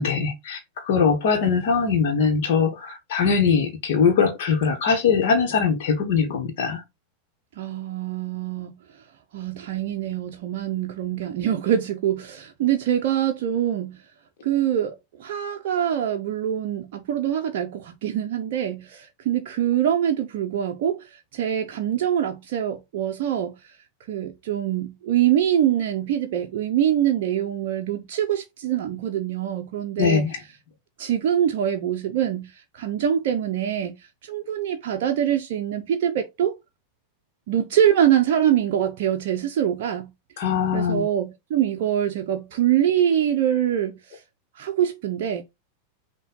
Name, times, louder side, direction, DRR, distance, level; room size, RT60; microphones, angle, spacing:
voice 1, 0.0-6.8 30.0-30.4 40.4-41.0, left 6 dB, 50° left, 1.1 m, -21 dB
voice 2, 7.6-8.7 9.3-14.0 14.4-23.5 24.1-30.2 31.0-34.0 34.2-36.6 37.5-40.1 40.7-44.2 44.6-45.4, right 10 dB, 50° right, 0.5 m, -24 dB
5.5 x 2.3 x 3.7 m
figure-of-eight pair, 90°, 0 cm